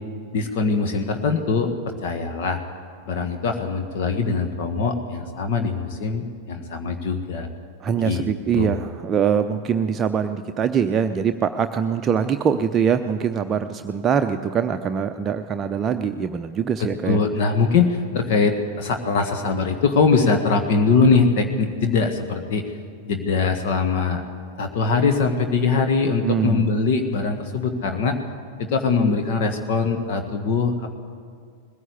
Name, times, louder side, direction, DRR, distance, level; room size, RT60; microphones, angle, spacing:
voice 1, 0.3-1.7 2.0-2.6 3.1-7.5 8.0-8.2 8.5-8.8 16.8-22.6 23.0-24.2 24.6-28.2 28.6-30.9, left 4 dB, 50° left, 5 dB, 1.6 m, -22 dB
voice 2, 7.8-17.2 26.2-26.7, right 7 dB, 25° right, 7 dB, 0.7 m, -23 dB
21.0 x 15.5 x 8.3 m, 2.1 s
figure-of-eight pair, 90°, 0 cm